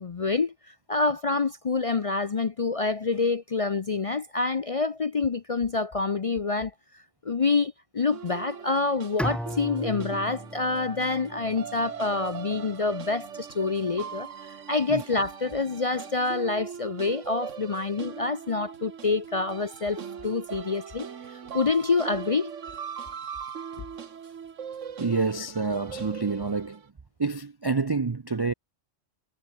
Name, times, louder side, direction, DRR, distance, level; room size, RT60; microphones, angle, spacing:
voice 1, 0.0-6.7 7.2-22.5, left 4 dB, 40° left, 0.5 m, -27 dB
sound 1, 8.1-26.9, right 7 dB, 80° right, 1.6 m, -40 dB
Bowed string instrument, 9.2-12.2, equal, ahead, 0.8 m, -36 dB
voice 2, 25.0-26.8 27.2-28.5, right 4 dB, 35° right, 0.3 m, -27 dB
omnidirectional pair, 1.3 m